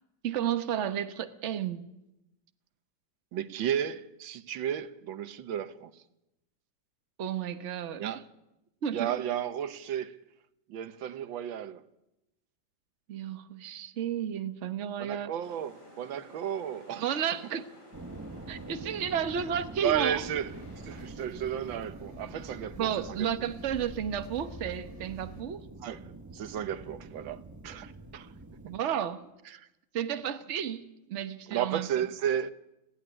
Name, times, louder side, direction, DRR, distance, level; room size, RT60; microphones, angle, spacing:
voice 1, 0.2-1.8 7.2-8.0 8.8-9.2 13.1-15.3 17.0-17.7 18.5-20.2 22.8-25.7 28.7-29.3 29.9-30.8 31.1-31.9, right 9 dB, 45° right, 1.2 m, -32 dB
voice 2, 3.3-5.9 8.0-8.2 8.9-10.2 10.7-11.8 15.0-17.1 19.7-20.5 20.8-22.9 23.2-23.3 25.8-28.3 29.5-29.7 31.5-32.5, right 10 dB, 90° right, 1.7 m, -33 dB
sound 1, 15.4-21.1, left 1 dB, 40° left, 4.9 m, -54 dB
sound 2, 17.9-28.8, right 2 dB, 20° right, 0.4 m, -45 dB
sound 3, 19.9-25.4, left 2 dB, 20° left, 1.3 m, -50 dB
30.0 x 10.5 x 10.0 m
omnidirectional pair, 2.0 m